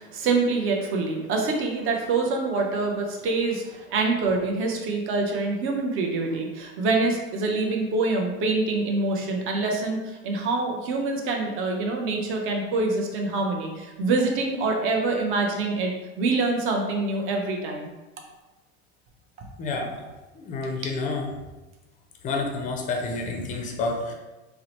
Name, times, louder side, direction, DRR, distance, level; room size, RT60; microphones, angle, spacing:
voice 1, 0.0-17.9, right 3 dB, 40° right, 1 dB, 0.6 m, -25 dB
voice 2, 19.6-20.0 20.3-21.3 22.2-24.1, left 3 dB, 25° left, 2 dB, 0.4 m, -29 dB
2.8 x 2.0 x 2.9 m, 1.1 s
hypercardioid pair, 110°, 34 cm